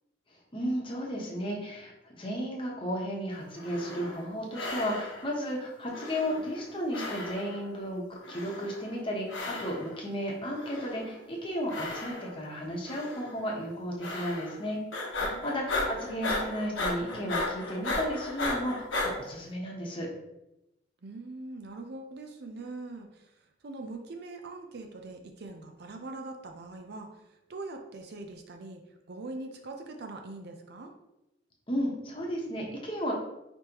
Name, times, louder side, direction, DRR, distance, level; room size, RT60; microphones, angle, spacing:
voice 1, 0.5-14.8 15.2-20.1 31.7-33.1, equal, 25° left, -2 dB, 0.9 m, -34 dB
sound 1, 3.5-4.3 4.5-5.4 5.9-6.7 6.9-7.7 8.2-8.9 9.3-10.0 10.5-11.2 11.7-12.5 12.9-13.3 14.0-14.6 14.9-19.1, left 2 dB, 85° left, 1.1 m, -35 dB
voice 2, 15.2-15.7 21.0-23.3 23.6-27.1 27.5-28.8 29.1-30.9, right 2 dB, 55° right, 4 dB, 0.5 m, -42 dB
5.1 x 3.0 x 2.9 m, 0.90 s
head